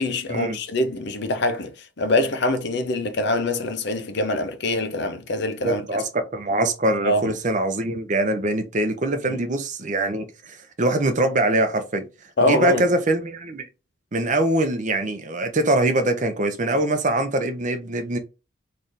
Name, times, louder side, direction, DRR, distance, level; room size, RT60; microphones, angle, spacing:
voice 1, 0.0-1.7 2.0-5.8 7.0-7.3 9.3-9.4 12.4-12.8, left 2 dB, 55° left, 0.7 m, -24 dB
voice 2, 5.6-12.1 12.4-13.7 14.1-18.2, right 2 dB, 40° right, 0.7 m, -23 dB
4.0 x 3.2 x 2.5 m
head